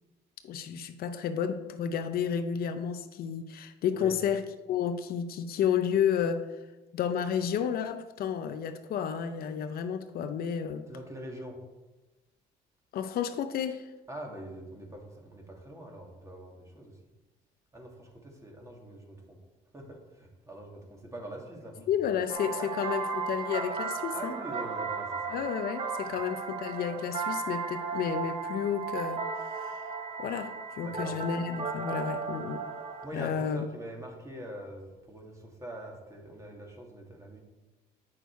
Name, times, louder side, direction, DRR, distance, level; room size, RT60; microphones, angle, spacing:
voice 1, 0.4-6.5 6.9-10.9 12.9-13.9 21.9-24.3 25.3-29.2 29.6-29.8 30.2-32.6 33.1-33.7, left 8 dB, 65° left, 9 dB, 0.7 m, -31 dB
voice 2, 10.9-11.6 14.1-17.0 17.7-19.4 19.7-22.1 22.6-22.8 24.1-25.4 30.8-31.2 33.0-37.4, right 1 dB, 20° right, 0 dB, 2.2 m, -44 dB
sound 1, 22.3-33.1, right 5 dB, 35° right, 1.1 m, -35 dB
8.7 x 6.3 x 4.6 m, 1.1 s
cardioid pair, 110°, 17 cm